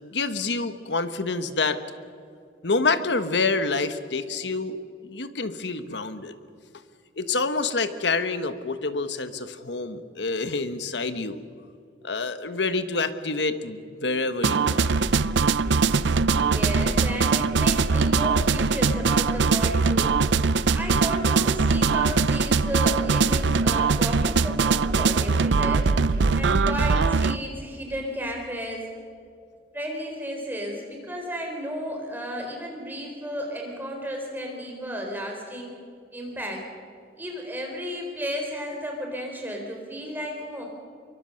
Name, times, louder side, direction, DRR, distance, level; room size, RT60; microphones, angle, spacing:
voice 1, 0.0-1.8 2.6-6.3 7.2-11.4 12.0-15.1, left 3 dB, 80° left, 10 dB, 1.3 m, -27 dB
sound 1, 14.4-27.4, right 5 dB, 85° right, 0.5 m, -22 dB
sound 2, 14.8-26.8, equal, 50° right, 6.1 m, -33 dB
voice 2, 16.4-20.2 20.7-25.9 26.3-28.9 29.7-35.8 36.1-36.6 37.2-40.6, equal, 10° right, 1 dB, 4.0 m, -33 dB
24.5 x 23.5 x 6.5 m, 2.3 s
head